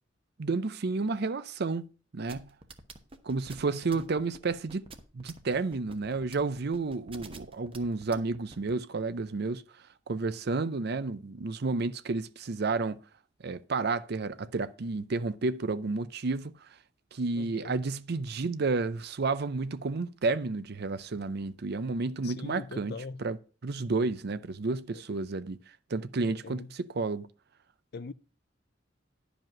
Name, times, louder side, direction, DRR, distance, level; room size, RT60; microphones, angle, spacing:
voice 1, 0.4-1.8 2.1-2.5 3.2-4.8 5.1-9.6 10.1-13.0 13.4-16.7 17.1-22.9 23.2-23.4 23.6-25.6 25.9-27.3, right 3 dB, 55° right, 0.6 m, -31 dB
sound 1, 2.3-8.7, right 3 dB, 30° right, 1.0 m, -47 dB
voice 2, 17.4-17.8 22.2-23.2 24.9-25.0 26.2-26.7 27.9-28.1, left 4 dB, 55° left, 0.5 m, -42 dB
11.0 x 5.1 x 5.9 m
head